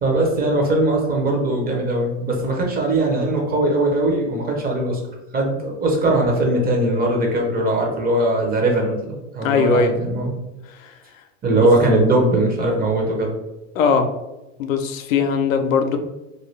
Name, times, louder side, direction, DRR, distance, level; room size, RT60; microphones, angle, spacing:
voice 1, 0.0-5.0 5.3-10.3 11.4-13.3, right 1 dB, 25° right, 0 dB, 0.7 m, -20 dB
voice 2, 9.4-9.9 10.7-10.9 11.6-11.7 13.7-14.1 14.6-16.0, left 5 dB, 90° left, 6 dB, 0.5 m, -20 dB
2.6 x 2.3 x 3.1 m, 0.99 s
hypercardioid pair, 110°, 39 cm